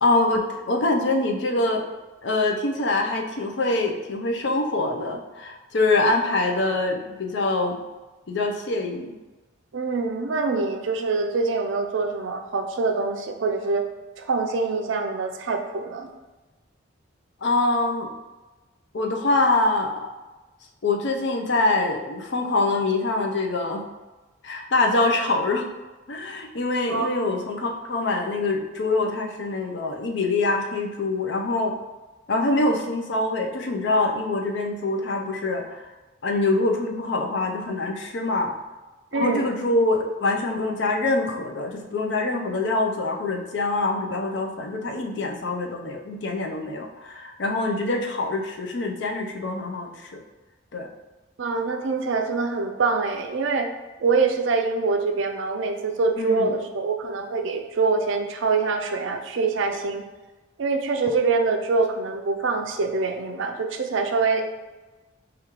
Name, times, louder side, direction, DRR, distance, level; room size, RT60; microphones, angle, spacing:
voice 1, 0.0-1.9 2.2-7.8 8.3-9.2 17.4-18.1 18.9-20.1 20.8-23.8 24.4-25.7 26.1-31.8 32.3-35.9 36.2-38.5 39.1-50.2 50.7-50.9 56.2-56.5, left 2 dB, 60° left, 3 dB, 0.5 m, -24 dB
voice 2, 9.7-13.8 14.2-16.1 26.9-27.1 39.1-39.4 51.4-53.7 54.0-60.0 60.6-64.5, right 4 dB, 75° right, 5 dB, 0.4 m, -24 dB
5.0 x 2.4 x 3.0 m, 1.2 s
head